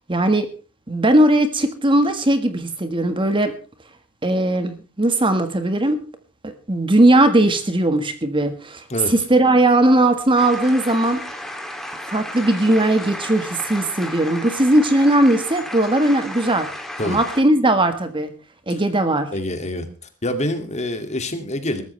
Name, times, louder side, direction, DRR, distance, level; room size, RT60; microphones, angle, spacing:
voice 1, 0.1-0.5 0.9-3.5 4.2-6.0 6.4-11.2 12.1-16.7 17.0-18.3 18.7-19.3, right 1 dB, 25° right, 9 dB, 1.5 m, -18 dB
sound 1, 10.4-17.4, left 1 dB, ahead, 2.7 m, -33 dB
voice 2, 19.3-19.9 20.2-21.8, left 1 dB, 30° left, 7 dB, 2.4 m, -26 dB
21.5 x 13.5 x 3.3 m, 0.35 s
head